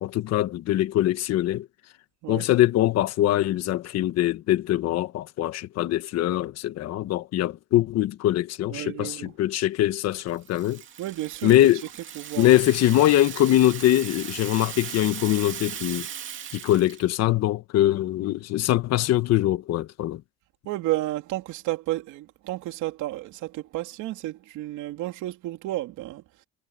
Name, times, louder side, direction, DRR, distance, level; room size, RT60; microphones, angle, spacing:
voice 1, 0.0-1.7 2.3-10.8 11.4-11.8 12.4-16.1 16.5-20.2, left 13 dB, 60° left, 1.3 m, -23 dB
voice 2, 8.7-9.3 11.0-11.7 12.1-12.6 20.6-26.2, right 16 dB, 80° right, 2.9 m, -32 dB
Rattle (instrument), 10.1-17.1, right 9 dB, 40° right, 2.5 m, -38 dB
cardioid pair, 150°, 30 cm